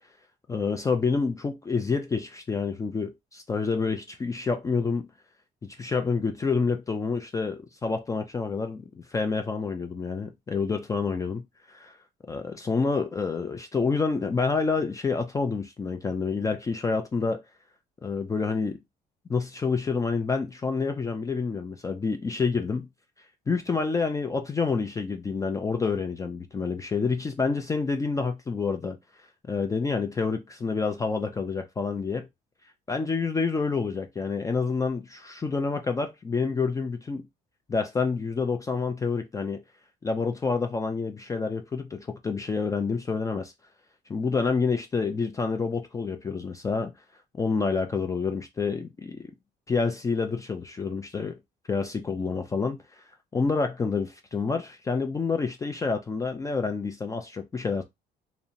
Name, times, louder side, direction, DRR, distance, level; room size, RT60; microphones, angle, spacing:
voice 1, 0.5-5.1 5.6-11.4 11.7-12.0 12.3-17.4 18.0-18.8 19.3-22.9 23.5-29.0 29.5-32.3 32.9-37.3 37.7-39.6 40.0-43.5 44.1-46.9 47.4-49.3 49.7-51.4 51.7-52.8 53.3-57.8, left 4 dB, 20° left, 0.3 m, -28 dB
2.7 x 2.1 x 2.5 m
cardioid pair, 110°, 17 cm